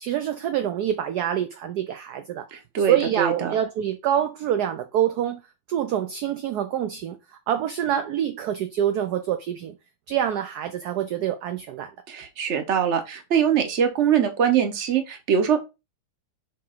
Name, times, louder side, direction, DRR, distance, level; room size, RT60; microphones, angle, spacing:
voice 1, 0.0-2.4 2.8-5.4 5.7-7.2 7.5-9.8 10.1-11.9, right 10 dB, 70° right, 1.0 m, -26 dB
voice 2, 2.5-3.5 12.1-15.6, right 8 dB, 45° right, 1.1 m, -23 dB
6.5 x 4.0 x 4.0 m
omnidirectional pair, 2.3 m